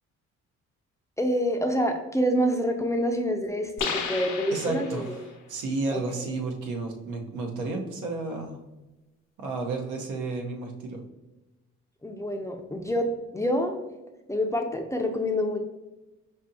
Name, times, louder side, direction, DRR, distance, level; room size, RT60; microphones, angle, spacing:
voice 1, 1.2-5.0 5.9-6.3 12.0-13.1 13.3-13.8 14.3-15.7, equal, 10° left, 3 dB, 0.4 m, -27 dB
sound 1, 3.8-5.3, left 6 dB, 80° left, 0.7 m, -33 dB
voice 2, 4.5-8.6 9.4-11.0, right 3 dB, 85° right, 2 dB, 0.9 m, -32 dB
5.3 x 2.7 x 2.7 m, 1.1 s
cardioid pair, 90°, 30 cm